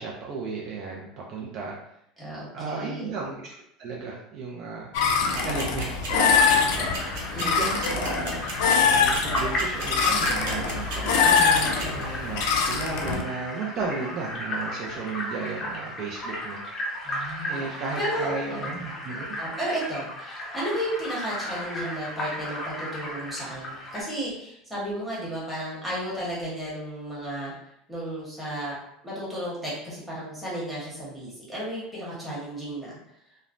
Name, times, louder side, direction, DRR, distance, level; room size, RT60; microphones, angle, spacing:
voice 1, 0.0-1.7 2.5-6.9 7.4-8.4 8.8-16.6 17.5-19.4, right 4 dB, 40° right, -2 dB, 0.4 m, -34 dB
voice 2, 2.2-3.1 7.3-8.0 17.0-18.8 19.4-27.5 27.9-28.8 29.0-33.0, right 1 dB, ahead, -8 dB, 0.9 m, -33 dB
sound 1, 4.9-13.2, left 6 dB, 70° left, 0.4 m, -24 dB
sound 2, 5.3-12.0, right 3 dB, 85° right, 1.0 m, -35 dB
sound 3, 6.3-24.0, left 1 dB, 25° left, 0.5 m, -34 dB
3.0 x 2.1 x 2.4 m, 0.76 s
cardioid pair, 165°, 0 cm